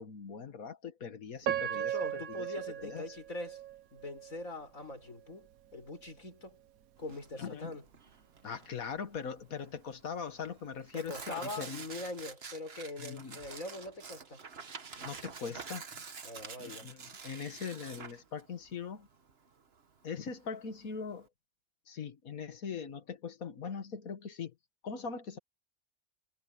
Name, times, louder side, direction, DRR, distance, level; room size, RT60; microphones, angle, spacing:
voice 1, 0.0-3.2 7.3-7.7 8.4-11.9 13.0-13.4 15.0-15.9 16.6-19.1 20.0-21.3 21.9-24.5 24.8-25.4, left 6 dB, 90° left, 2.0 m, -41 dB
Piano, 1.4-4.5 5.0-5.1 5.8-6.0, right 11 dB, 85° right, 1.4 m, -37 dB
voice 2, 1.6-3.6 3.9-5.5 5.7-6.6 7.0-7.8 10.9-14.4 16.2-16.9, left 2 dB, 75° left, 5.7 m, -42 dB
Tearing, 7.0-21.3, right 5 dB, 50° right, 1.5 m, -48 dB
omnidirectional pair, 1.4 m